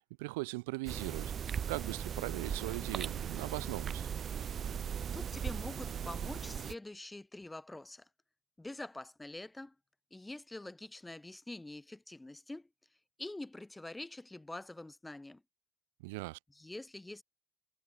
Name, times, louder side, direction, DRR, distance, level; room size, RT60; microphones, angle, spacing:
voice 1, 0.2-1.3 1.7-4.1 16.0-16.4, right 25 dB, 75° right, 1.5 m, -39 dB
sound 1, 0.9-6.7, right 8 dB, 40° right, 1.2 m, -38 dB
voice 2, 5.1-8.1 8.6-9.7 10.1-12.7 13.2-15.4 16.5-17.2, left 2 dB, 10° left, 1.1 m, -45 dB
hypercardioid pair, 70°, 0 cm